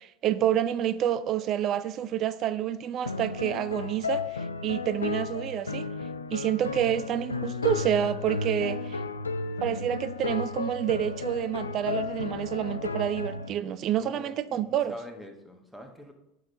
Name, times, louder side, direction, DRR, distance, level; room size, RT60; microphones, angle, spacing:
voice 1, 0.0-5.9 6.3-9.0 9.6-14.9, right 10 dB, 45° right, 0.4 m, -28 dB
sound 1, 3.1-13.5, left 4 dB, 90° left, 0.4 m, -33 dB
voice 2, 13.9-16.1, equal, 5° right, 1.3 m, -45 dB
8.0 x 4.0 x 4.5 m
hypercardioid pair, 80°, 0 cm